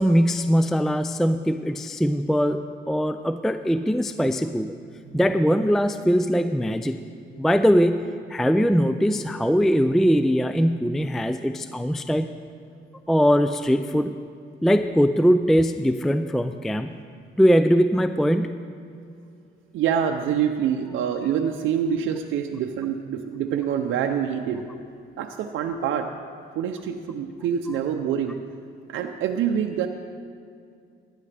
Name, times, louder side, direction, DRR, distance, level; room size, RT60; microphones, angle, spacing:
voice 1, 0.0-4.7 5.1-7.0 7.4-12.3 13.1-14.2 14.6-16.9 17.4-18.6, equal, ahead, 10 dB, 0.3 m, -21 dB
voice 2, 19.7-24.7 25.2-26.1 26.5-28.4 28.9-29.9, right 8 dB, 80° right, 4 dB, 0.6 m, -26 dB
16.0 x 10.5 x 3.4 m, 2.4 s
cardioid pair, 90°, 20 cm